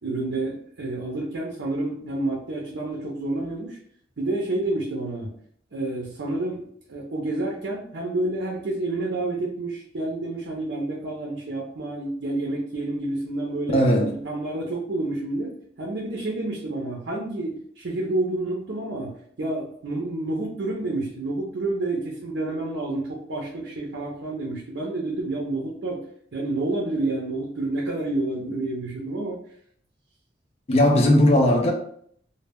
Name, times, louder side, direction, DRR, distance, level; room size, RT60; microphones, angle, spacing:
voice 1, 0.0-3.8 4.2-5.3 5.7-13.8 14.2-26.0 26.3-29.4, right 2 dB, 75° right, 0.6 m, -29 dB
voice 2, 13.7-14.1 30.7-31.7, left 1 dB, 35° left, 0.4 m, -17 dB
2.2 x 2.1 x 3.4 m
head